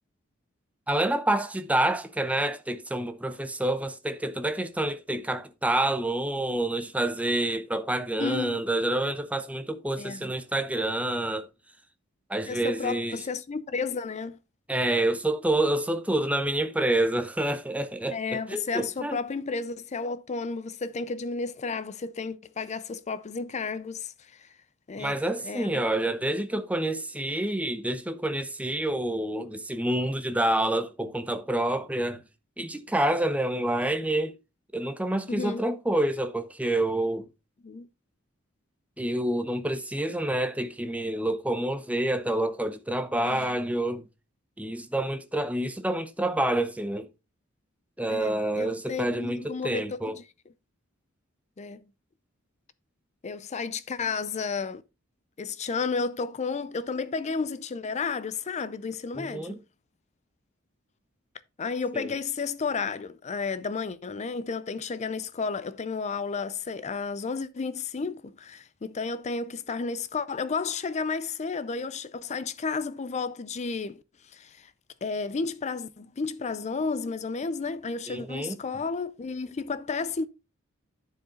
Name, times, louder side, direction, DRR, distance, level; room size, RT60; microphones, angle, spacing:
voice 1, 0.9-11.5 12.3-13.2 14.7-19.2 25.0-32.2 32.6-34.4 34.7-37.3 39.0-44.0 44.6-47.1 48.0-50.2 59.1-59.6 61.9-62.1 78.1-78.6, right 1 dB, 5° right, 0.6 m, -28 dB
voice 2, 8.2-8.6 10.0-10.3 12.5-14.4 18.1-24.5 24.9-25.8 29.1-29.2 35.3-35.6 37.6-37.9 43.2-43.6 48.1-50.2 51.6-51.8 53.2-54.8 55.4-59.6 61.6-74.7 75.0-80.3, left 4 dB, 35° left, 0.4 m, -32 dB
10.5 x 4.8 x 3.8 m
head